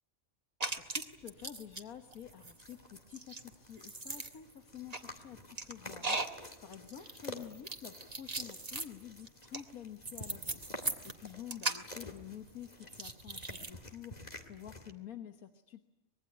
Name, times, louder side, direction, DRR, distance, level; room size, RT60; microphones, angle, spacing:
sound 1, 0.6-1.8 2.1-13.7, right 2 dB, 30° right, 1.8 m, -39 dB
voice 1, 0.8-6.2 6.6-10.7 11.0-15.8, left 9 dB, 90° left, 7 dB, 1.7 m, -49 dB
sound 2, 2.2-14.9, left 1 dB, 30° left, 2.3 m, -50 dB
25.0 x 21.5 x 9.7 m, 0.88 s
omnidirectional pair, 1.5 m